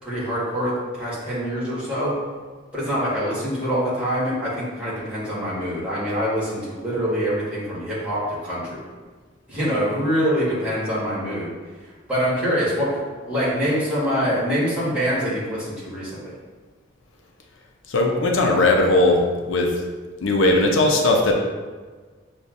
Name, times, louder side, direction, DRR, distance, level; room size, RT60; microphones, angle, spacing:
voice 1, 0.0-2.1 2.7-8.8 9.5-11.5 12.1-16.3, equal, 5° right, -10 dB, 1.4 m, -25 dB
voice 2, 17.9-19.8 20.2-21.3, left 2 dB, 75° left, 1 dB, 0.5 m, -18 dB
6.6 x 2.4 x 2.5 m, 1.4 s
head